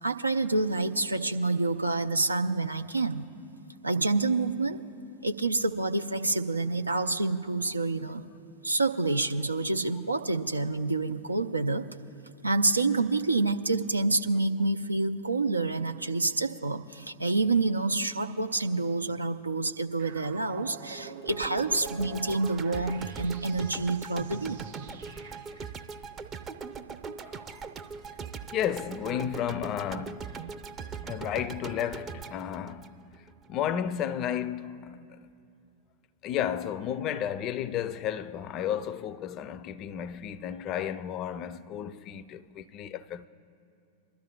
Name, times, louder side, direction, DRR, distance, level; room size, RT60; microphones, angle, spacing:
voice 1, 0.0-3.2 3.8-4.8 5.2-8.3 8.6-11.8 12.4-24.6, right 3 dB, 80° right, 0.5 m, -28 dB
sound 1, 20.0-25.7, right 6 dB, 65° right, 0.9 m, -46 dB
sound 2, 21.3-33.5, right 5 dB, 25° right, 0.6 m, -41 dB
voice 2, 27.2-27.6 28.5-30.5 31.0-33.0 33.5-35.2 36.2-43.3, left 10 dB, 35° left, 0.4 m, -33 dB
26.5 x 12.5 x 2.3 m
figure-of-eight pair, 90°, 0 cm